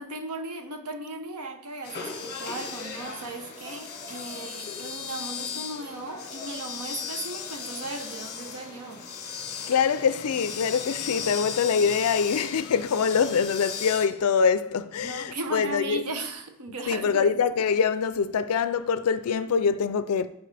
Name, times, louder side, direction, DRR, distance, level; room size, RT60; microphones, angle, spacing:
voice 1, 0.0-9.0 11.3-11.4 15.0-17.4, right 2 dB, 80° right, 0.9 m, -37 dB
sound 1, 1.8-14.1, left 6 dB, 45° left, 1.4 m, -37 dB
voice 2, 9.7-16.0 16.9-20.3, left 6 dB, 75° left, 0.4 m, -24 dB
11.5 x 5.0 x 3.4 m
head